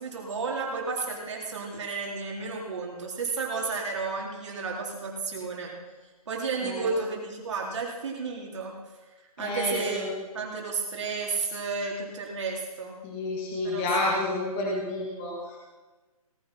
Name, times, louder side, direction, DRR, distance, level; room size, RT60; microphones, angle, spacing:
voice 1, 0.0-5.8 6.3-8.8 9.4-10.1 10.3-12.9 13.6-14.3, right 4 dB, 50° right, -1 dB, 3.8 m, -32 dB
voice 2, 9.4-10.1 13.0-15.6, left 2 dB, 15° left, -3 dB, 2.3 m, -30 dB
18.0 x 8.9 x 5.8 m, 1.2 s
hypercardioid pair, 165°, 20 cm